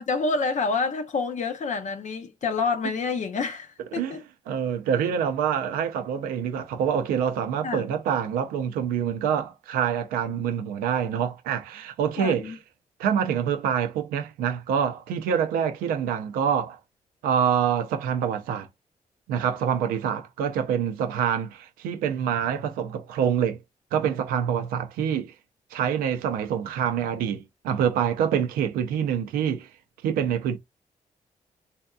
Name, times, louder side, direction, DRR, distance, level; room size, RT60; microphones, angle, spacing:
voice 1, 0.0-4.2 7.6-7.9 10.3-10.4 12.2-12.6, left 4 dB, 55° left, 0.6 m, -28 dB
voice 2, 4.5-12.5 13.0-16.8 17.2-18.7 19.3-23.6 23.9-25.3 25.7-29.7 30.0-30.6, right 8 dB, 90° right, 0.5 m, -26 dB
3.3 x 2.7 x 2.2 m
supercardioid pair, 45°, 15 cm